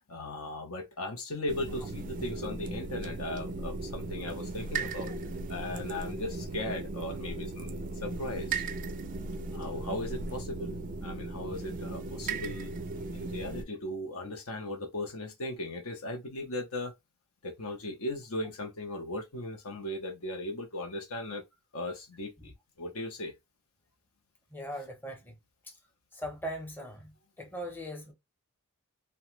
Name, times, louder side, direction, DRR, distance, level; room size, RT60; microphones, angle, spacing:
voice 1, 0.0-5.1 5.5-7.8 8.0-8.6 9.5-12.7 13.1-16.9 17.4-21.4 21.7-22.5 22.8-23.3, left 1 dB, 70° left, 0.8 m, -37 dB
sound 1, 1.5-13.6, right 3 dB, 35° right, 0.3 m, -37 dB
voice 2, 24.5-25.3 26.2-27.1 27.4-28.1, equal, 10° left, 0.8 m, -39 dB
2.9 x 2.2 x 3.0 m
head